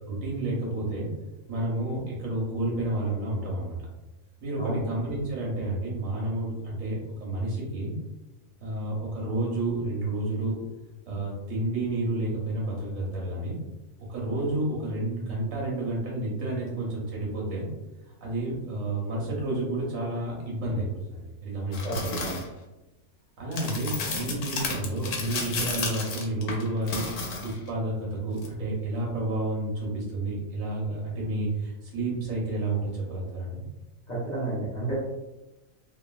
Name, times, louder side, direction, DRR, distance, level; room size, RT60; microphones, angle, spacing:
voice 1, 0.0-1.1 1.5-3.8 4.4-8.0 8.6-10.6 11.1-13.6 14.0-17.7 18.2-22.2 23.4-33.6, right 2 dB, 70° right, -4 dB, 1.3 m, -30 dB
sound 1, 21.7-22.5 23.5-27.7 28.4-28.5, left 3 dB, 70° left, 0.9 m, -32 dB
voice 2, 21.8-22.4 34.1-34.9, right 2 dB, 40° left, -7 dB, 0.7 m, -31 dB
3.0 x 2.3 x 2.3 m, 1.0 s
omnidirectional pair, 1.4 m